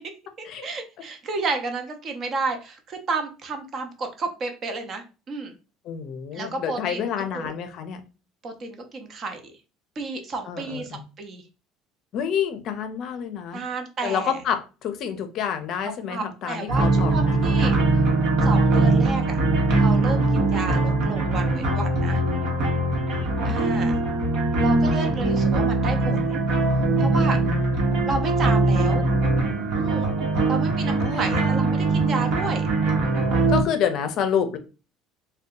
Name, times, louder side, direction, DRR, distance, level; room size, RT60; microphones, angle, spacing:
voice 1, 0.6-5.5 6.3-7.0 7.3-7.6 8.4-9.4 10.0-11.4 13.5-14.4 15.8-17.8 18.4-19.4 19.8-22.2 23.4-24.0 24.6-26.4 27.0-27.4 28.1-29.0 29.7-30.1 30.5-32.7, right 3 dB, 35° right, 5 dB, 0.6 m, -31 dB
voice 2, 5.9-8.0 10.5-11.0 12.1-13.6 14.0-17.5 24.8-25.5 27.4-28.0 31.0-31.6 33.5-34.6, left 8 dB, 50° left, 8 dB, 0.5 m, -29 dB
sound 1, 16.7-33.6, right 2 dB, 75° right, 1.0 m, -21 dB
2.6 x 2.2 x 3.7 m, 0.32 s
cardioid pair, 135°, 0 cm